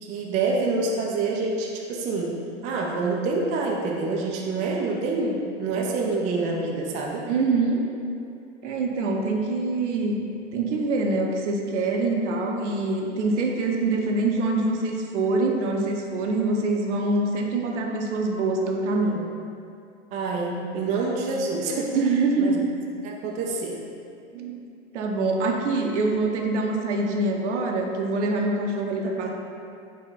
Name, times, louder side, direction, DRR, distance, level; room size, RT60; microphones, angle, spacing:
voice 1, 0.0-2.3 2.6-7.2 20.1-21.9 22.4-22.6 23.0-23.8 29.0-29.3, right 3 dB, 20° right, -1 dB, 0.3 m, -27 dB
voice 2, 7.3-7.9 8.6-10.2 10.5-19.2 21.9-22.6 24.3-24.7 24.9-29.3, right 3 dB, 70° right, 1 dB, 0.6 m, -25 dB
4.7 x 2.2 x 3.8 m, 2.5 s
hypercardioid pair, 95°, 37 cm